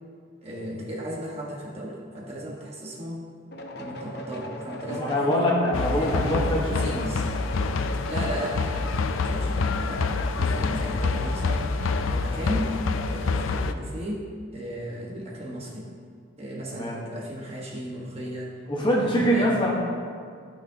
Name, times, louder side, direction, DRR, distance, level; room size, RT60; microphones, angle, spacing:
voice 1, 0.4-3.3 3.8-5.5 5.9-6.1 6.7-7.3 8.0-11.7 12.1-12.8 13.0-15.9 16.4-18.5 18.8-19.6, equal, 30° right, -4 dB, 1.4 m, -35 dB
sound 1, 3.5-13.1, left 1 dB, 55° left, 0.8 m, -39 dB
voice 2, 5.0-6.8 16.7-17.0 18.7-19.7, equal, 25° left, -3 dB, 1.2 m, -23 dB
sound 2, 5.7-13.7, left 3 dB, 85° left, 0.5 m, -27 dB
14.5 x 6.2 x 2.8 m, 2.1 s
head